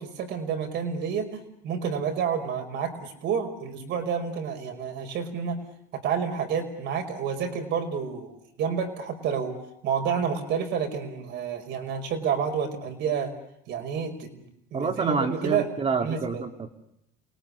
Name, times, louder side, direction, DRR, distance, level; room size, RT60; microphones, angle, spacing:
voice 1, 0.0-5.6 6.0-9.6 9.8-13.3 13.7-14.4 14.7-15.7 16.0-16.4, right 7 dB, 65° right, 5 dB, 5.4 m, -29 dB
voice 2, 14.7-16.7, right 4 dB, 30° right, 5 dB, 3.0 m, -28 dB
28.5 x 19.0 x 9.9 m, 0.79 s
supercardioid pair, 100°, 19 cm